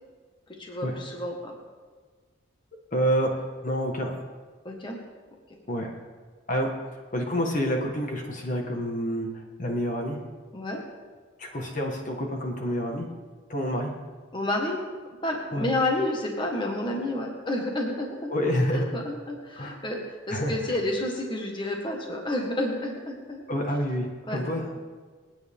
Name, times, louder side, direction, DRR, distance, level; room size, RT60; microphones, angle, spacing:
voice 1, 0.6-1.6 4.6-5.0 10.5-10.8 14.3-14.8 15.2-18.3 18.7-20.0 20.3-23.4 24.3-24.4, left 1 dB, 25° left, 0 dB, 1.7 m, -30 dB
voice 2, 2.9-4.1 5.7-6.0 6.5-6.7 7.1-10.2 11.4-13.1 13.5-13.9 15.5-15.7 18.3-18.9 19.6-19.8 20.3-20.5 23.5-24.8, equal, 40° left, 1 dB, 1.7 m, -28 dB
28.0 x 9.4 x 3.7 m, 1.4 s
head